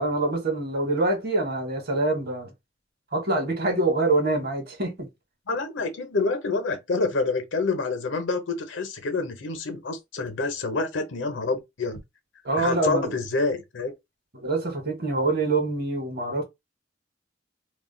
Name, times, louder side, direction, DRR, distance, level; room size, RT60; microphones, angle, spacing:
voice 1, 0.0-2.5 3.1-5.1 12.4-13.2 14.3-16.4, right 2 dB, 55° right, 1.0 m, -25 dB
voice 2, 5.5-12.0 12.6-13.9, left 3 dB, 80° left, 0.8 m, -27 dB
2.4 x 2.1 x 3.7 m
head